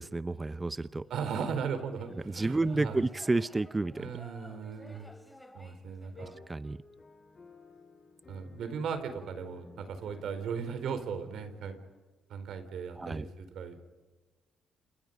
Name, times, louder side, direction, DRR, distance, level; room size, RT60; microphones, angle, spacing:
voice 1, 0.0-1.1 2.2-4.1 6.5-6.8 13.0-13.3, right 2 dB, 20° right, 14 dB, 0.8 m, -30 dB
sound 1, 1.0-6.4, left 1 dB, 5° left, 3.1 m, -54 dB
voice 2, 1.1-3.0 4.0-5.1 5.5-6.3 8.3-11.8 12.3-13.8, right 6 dB, 75° right, 9 dB, 4.5 m, -37 dB
sound 2, 6.1-12.0, left 3 dB, 35° left, 5.5 m, -55 dB
29.5 x 28.0 x 5.4 m, 1.2 s
cardioid pair, 90°, 0 cm